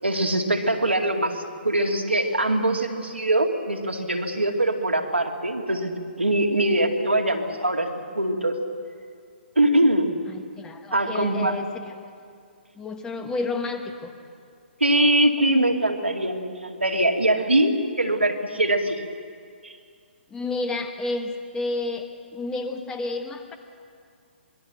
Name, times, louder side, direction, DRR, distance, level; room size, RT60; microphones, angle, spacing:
voice 1, 0.0-7.9 8.1-8.6 9.6-10.1 10.9-11.6 14.8-19.0 19.6-19.7, right 1 dB, 80° right, 2 dB, 2.5 m, -22 dB
voice 2, 10.3-12.1 12.7-14.1 20.3-23.6, left 3 dB, 10° left, 6 dB, 1.5 m, -31 dB
25.5 x 22.0 x 6.9 m, 2.2 s
figure-of-eight pair, 130°, 6 cm